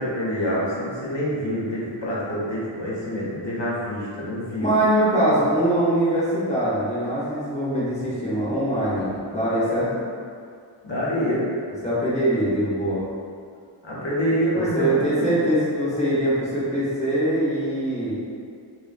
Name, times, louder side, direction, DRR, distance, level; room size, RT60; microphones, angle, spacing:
voice 1, 0.0-4.7 10.8-11.5 13.8-15.4, equal, 60° left, -6 dB, 0.8 m, -26 dB
voice 2, 4.6-10.0 11.8-13.0 14.5-18.2, right 1 dB, 15° left, -10 dB, 0.7 m, -22 dB
3.1 x 2.1 x 2.4 m, 2.3 s
wide cardioid pair, 95°, 49 cm